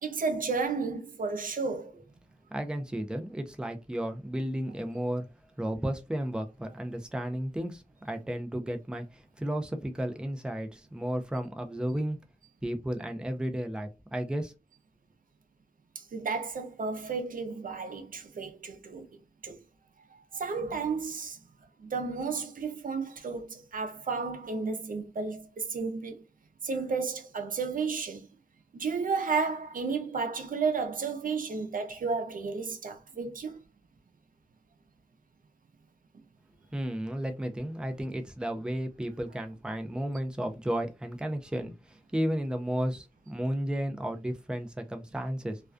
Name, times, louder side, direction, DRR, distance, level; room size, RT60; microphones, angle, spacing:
voice 1, 0.0-2.0 16.0-19.1 19.4-19.6 20.3-21.4 21.8-26.1 26.6-28.3 28.7-33.6, right 4 dB, 80° right, 0.5 m, -32 dB
voice 2, 2.5-5.3 5.6-12.2 12.6-14.5 36.7-45.6, equal, 5° right, 0.4 m, -33 dB
2.3 x 2.2 x 2.4 m
wide cardioid pair, 90°, 14 cm